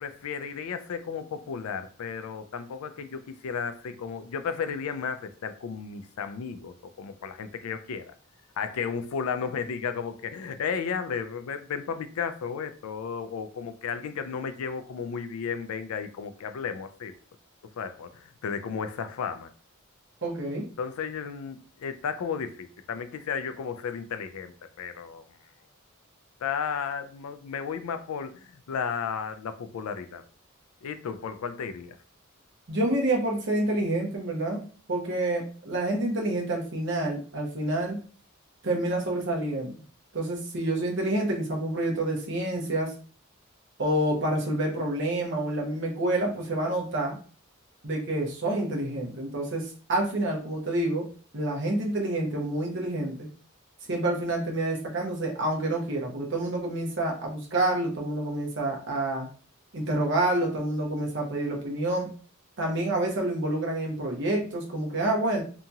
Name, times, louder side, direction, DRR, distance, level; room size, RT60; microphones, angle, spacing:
voice 1, 0.0-8.1 8.6-17.1 17.8-19.5 20.8-25.2 26.4-30.2 30.8-32.0, left 6 dB, 90° left, 0.4 m, -34 dB
voice 2, 20.2-20.7 32.7-38.0 38.6-39.7 40.1-42.9 43.8-47.2 47.8-51.1 51.3-53.3 53.9-59.3 59.7-62.1 62.6-65.4, right 1 dB, 60° right, 0.9 m, -28 dB
2.8 x 2.7 x 2.3 m
head